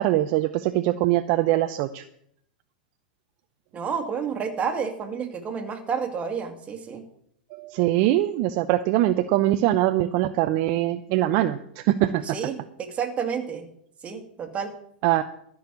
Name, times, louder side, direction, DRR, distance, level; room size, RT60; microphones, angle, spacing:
voice 1, 0.0-2.0 7.5-12.2 15.0-15.2, right 14 dB, 50° right, 10 dB, 0.7 m, -22 dB
voice 2, 3.7-7.1 12.2-13.7 14.0-14.7, right 6 dB, 25° right, 5 dB, 2.2 m, -30 dB
13.5 x 6.5 x 8.4 m, 0.69 s
hypercardioid pair, 105°, 5 cm